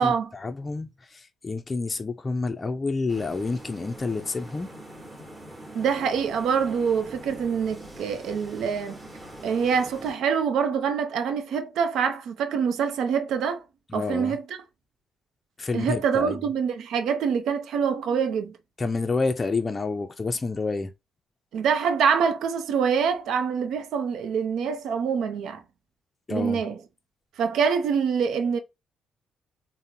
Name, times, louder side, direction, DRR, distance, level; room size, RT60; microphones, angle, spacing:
voice 1, 0.0-4.7 13.9-14.4 15.6-16.4 18.8-20.9 26.3-26.6, left 3 dB, 25° left, 0.4 m, -29 dB
sound 1, 3.1-10.1, right 1 dB, 20° right, 1.1 m, -43 dB
voice 2, 5.7-9.0 9.4-13.6 13.9-14.6 15.7-18.6 21.5-25.6 26.3-26.8 27.4-28.6, right 6 dB, 75° right, 0.5 m, -25 dB
3.6 x 2.0 x 2.7 m
cardioid pair, 90°, 0 cm